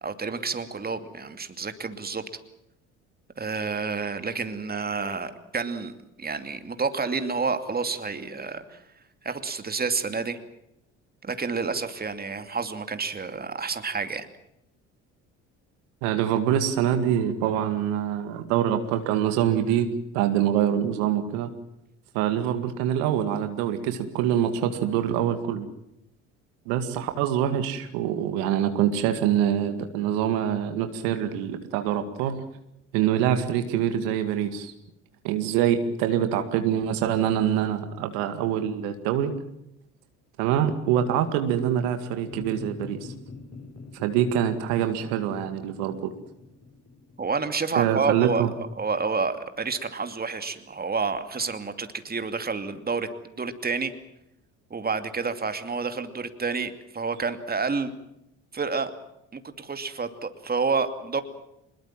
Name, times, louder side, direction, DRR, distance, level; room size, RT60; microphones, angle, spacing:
voice 1, 0.0-2.2 3.4-8.8 9.2-10.4 11.2-14.3 47.2-53.1 53.4-53.9 54.7-57.9 58.5-58.9 59.3-61.2, right 4 dB, 25° right, 9 dB, 2.6 m, -29 dB
voice 2, 16.0-21.5 22.1-25.7 26.7-32.4 32.9-34.7 35.2-39.3 40.4-43.1 43.9-46.1 47.7-48.5, right 10 dB, 70° right, 8 dB, 2.2 m, -25 dB
sound 1, 42.2-48.8, left 3 dB, 45° left, 6.2 m, -44 dB
24.5 x 22.0 x 7.5 m, 0.81 s
hypercardioid pair, 60°, 36 cm